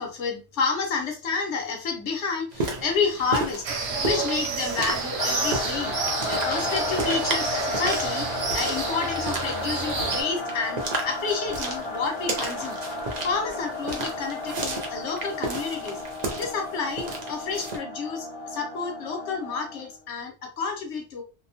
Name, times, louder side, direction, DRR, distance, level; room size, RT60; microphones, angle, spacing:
voice 1, 0.0-6.0 6.3-12.8 13.2-16.0 16.4-21.2, left 4 dB, 85° left, 2 dB, 1.1 m, -30 dB
sound 1, 2.5-17.8, right 2 dB, 45° right, 0.6 m, -34 dB
sound 2, 3.6-10.2, right 4 dB, 75° right, 1.0 m, -30 dB
sound 3, 5.2-19.9, left 3 dB, 45° left, 0.4 m, -33 dB
2.8 x 2.0 x 2.7 m, 0.33 s
omnidirectional pair, 1.2 m